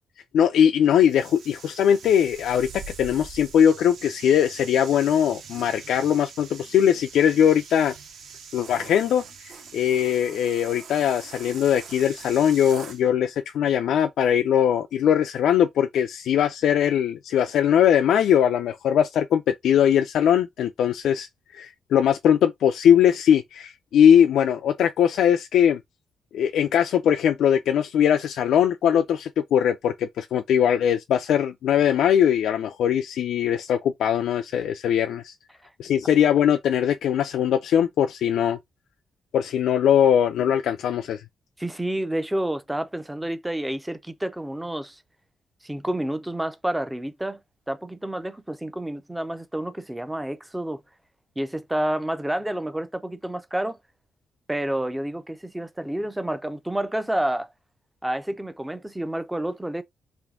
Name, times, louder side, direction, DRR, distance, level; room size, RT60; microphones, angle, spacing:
voice 1, 0.3-2.7 3.0-7.9 8.5-21.3 21.5-25.8 26.3-35.3 35.8-38.6 39.3-41.2, left 9 dB, 85° left, 0.3 m, -21 dB
sound 1, 1.0-13.0, right 5 dB, 65° right, 0.8 m, -43 dB
voice 2, 41.6-45.0 45.6-47.4 47.7-50.8 51.4-53.8 54.5-57.5 58.0-59.8, right 1 dB, 5° right, 0.4 m, -29 dB
3.5 x 2.6 x 3.5 m
wide cardioid pair, 170°, 0 cm